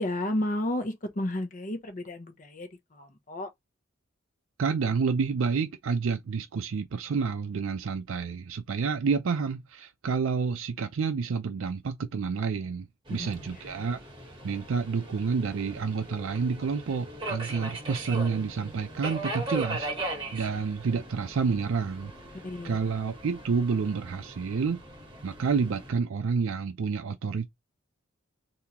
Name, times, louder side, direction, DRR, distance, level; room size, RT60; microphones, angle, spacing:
voice 1, 0.0-3.5 13.2-13.5 22.4-22.8, left 1 dB, 40° left, 0.8 m, -32 dB
voice 2, 4.6-14.0 14.4-22.1 22.6-24.8 25.2-27.5, right 5 dB, 75° right, 0.4 m, -29 dB
Subway metro underground, 13.1-25.9, right 2 dB, 25° right, 1.2 m, -39 dB
3.6 x 2.7 x 2.9 m
head